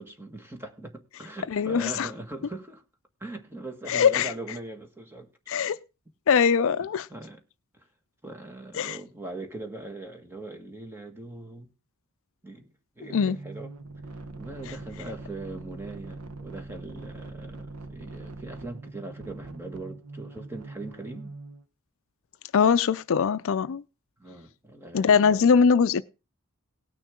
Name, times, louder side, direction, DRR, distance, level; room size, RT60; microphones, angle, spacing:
voice 1, 0.0-2.8 3.2-5.3 7.1-7.4 7.7-7.9 8.2-11.7 12.4-13.7 14.4-21.3 24.2-25.5, right 2 dB, 10° right, 1.6 m, -41 dB
voice 2, 1.5-2.1 3.9-4.3 5.5-5.8 6.3-7.1 8.7-9.0 13.1-13.4 22.5-23.8 24.9-26.0, left 6 dB, 65° left, 0.4 m, -21 dB
sound 1, 13.0-21.6, right 2 dB, 90° right, 1.0 m, -42 dB
18.5 x 6.4 x 3.7 m
head